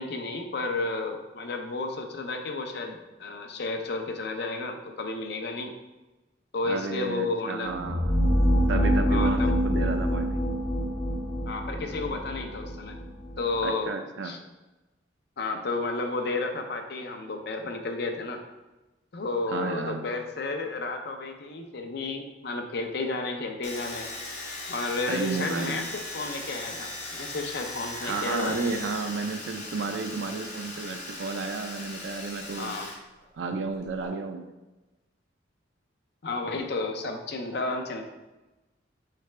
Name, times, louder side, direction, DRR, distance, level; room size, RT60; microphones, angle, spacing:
voice 1, 0.0-5.7 6.5-7.8 9.1-9.6 11.5-13.0 13.4-13.9 14.2-14.4 15.4-18.4 19.1-24.1 24.7-28.6 32.6-32.9 36.2-38.1, left 3 dB, 60° left, 4 dB, 0.5 m, -32 dB
voice 2, 6.6-8.1 8.7-10.4 13.6-14.3 19.5-20.0 25.1-25.8 28.0-32.8 33.3-34.5, right 4 dB, 70° right, 6 dB, 0.4 m, -32 dB
sound 1, 7.7-13.6, equal, 5° right, 0.8 m, -26 dB
Domestic sounds home sounds, 23.6-33.0 33.2-34.1, left 2 dB, 40° left, 1.1 m, -38 dB
4.8 x 3.3 x 3.2 m, 1.1 s
head